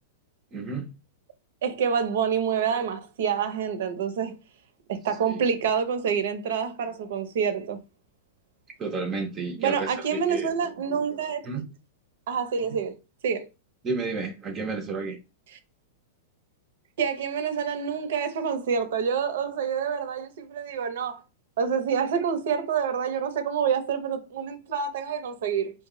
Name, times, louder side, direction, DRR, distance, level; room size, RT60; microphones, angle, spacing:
voice 1, 0.5-0.9 5.3-5.4 8.8-10.5 11.4-11.6 13.8-15.2, right 4 dB, 25° right, 0.5 m, -31 dB
voice 2, 1.6-4.4 4.9-7.8 9.6-11.7 12.3-13.0 13.2-13.5 17.0-21.2 21.6-25.7, right 7 dB, 70° right, 0.6 m, -27 dB
2.1 x 2.0 x 3.7 m
hypercardioid pair, 135°, 0 cm